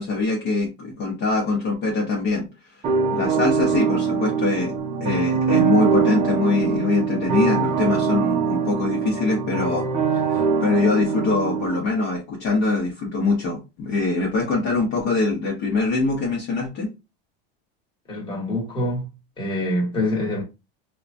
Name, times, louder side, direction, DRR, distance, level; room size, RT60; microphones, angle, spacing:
voice 1, 0.0-4.7 5.0-9.9 10.1-16.9, left 3 dB, 40° left, 1.1 m, -23 dB
sound 1, 2.8-11.8, right 5 dB, 20° right, 0.6 m, -22 dB
voice 2, 18.1-19.1 19.4-20.4, left 1 dB, 15° left, 1.5 m, -25 dB
4.7 x 2.3 x 2.6 m
supercardioid pair, 165°, 32 cm